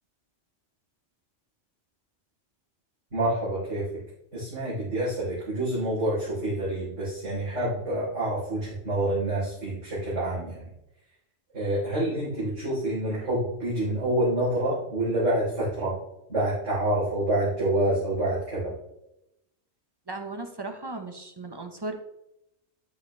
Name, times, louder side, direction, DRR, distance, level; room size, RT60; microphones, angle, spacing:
voice 1, 3.1-3.8 4.3-10.6 11.5-15.9 16.3-18.7, right 1 dB, 80° right, -11 dB, 4.2 m, -27 dB
voice 2, 20.1-21.9, right 2 dB, 20° right, 5 dB, 0.9 m, -36 dB
9.5 x 8.1 x 3.3 m, 0.85 s
omnidirectional pair, 1.2 m